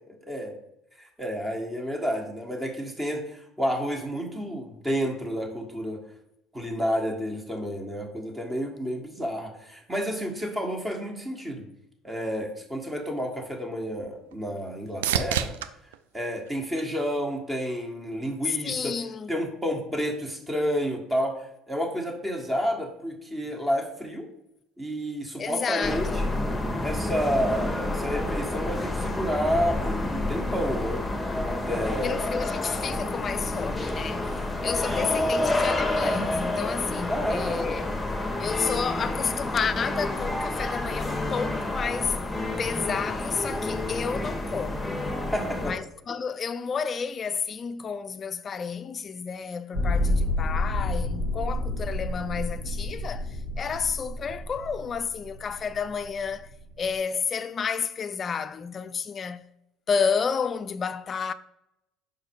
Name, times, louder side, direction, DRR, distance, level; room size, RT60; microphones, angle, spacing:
voice 1, 0.1-0.6 1.0-6.0 6.5-11.7 12.0-15.5 16.1-18.9 19.3-24.3 24.8-26.3 26.8-31.0 31.4-32.3 34.9-35.3 37.1-37.7 45.3-45.7, equal, 15° right, 1.6 m, -30 dB
sound 1, 13.3-17.5 18.0-18.6 26.5-26.6, right 9 dB, 85° right, 0.4 m, -34 dB
voice 2, 18.6-19.3 25.4-26.3 32.0-37.9 38.4-42.2 42.6-45.0 45.6-56.5 56.8-59.5 59.9-61.3, left 6 dB, 35° left, 0.4 m, -31 dB
sound 2, 25.8-45.7, left 2 dB, 10° left, 1.2 m, -29 dB
sound 3, 49.7-56.9, left 1 dB, 65° right, 2.4 m, -29 dB
5.4 x 4.8 x 4.7 m
hypercardioid pair, 80°, 0 cm